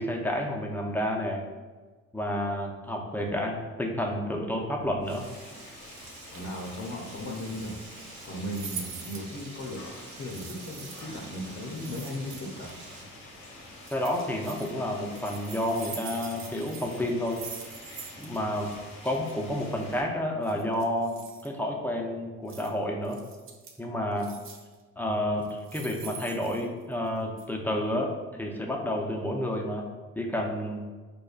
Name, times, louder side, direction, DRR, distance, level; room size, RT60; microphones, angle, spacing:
voice 1, 0.0-1.4 2.1-5.2 13.9-17.4 18.2-18.7 19.0-23.2 23.8-24.3 25.0-29.9 30.2-30.8, left 1 dB, 5° left, 0 dB, 0.5 m, -30 dB
Frying (food), 5.0-13.0, right 3 dB, 80° right, 0.9 m, -49 dB
sound 1, 5.2-20.0, left 1 dB, 85° left, 1.0 m, -47 dB
voice 2, 6.3-7.7 8.2-9.8 10.2-12.8, left 1 dB, 50° left, -2 dB, 0.6 m, -36 dB
sound 2, 8.5-9.3 10.3-11.1 11.7-12.7 13.8-14.7 15.1-18.4 18.6-18.7 19.0-19.3 20.4-21.5 22.5-22.7 23.0-23.8 24.2-24.7 25.4-27.1 27.4-27.5, right 6 dB, 45° right, 0.5 m, -44 dB
5.0 x 2.2 x 2.4 m, 1.3 s
cardioid pair, 90°, 30 cm